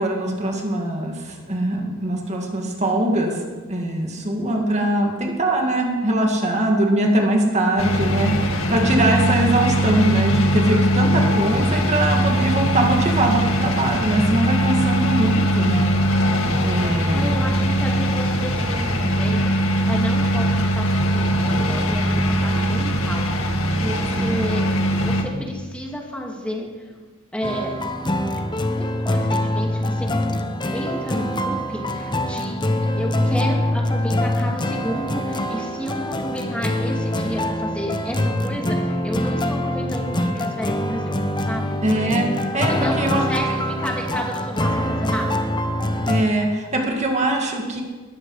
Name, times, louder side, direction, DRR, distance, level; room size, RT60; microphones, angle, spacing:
voice 1, 0.0-3.4 3.7-15.9 16.6-17.5 24.2-24.4 41.8-43.2 46.1-47.8, right 1 dB, 35° right, 1 dB, 2.1 m, -22 dB
sound 1, 7.8-25.2, equal, 70° left, 1.9 m, -21 dB
voice 2, 16.8-26.9 27.3-27.7 28.7-30.1 30.7-41.2 41.5-41.8 42.5-45.4, equal, 5° left, 0 dB, 2.4 m, -31 dB
sound 2, 27.4-46.2, left 1 dB, 20° left, 1.0 m, -24 dB
19.5 x 14.5 x 4.9 m, 1.4 s
head